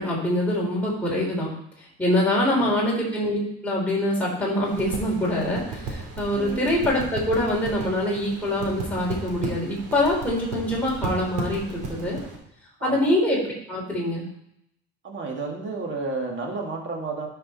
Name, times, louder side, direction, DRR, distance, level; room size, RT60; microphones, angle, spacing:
voice 1, 0.0-1.5 1.8-12.2 12.8-14.3, left 1 dB, 5° left, -5 dB, 3.4 m, -24 dB
sound 1, 4.6-12.4, right 3 dB, 75° right, 2.9 m, -35 dB
voice 2, 6.3-6.8 12.8-13.1 15.0-17.3, right 3 dB, 40° right, 0 dB, 2.4 m, -31 dB
11.5 x 5.5 x 4.3 m, 0.76 s
cardioid pair, 105°, 31 cm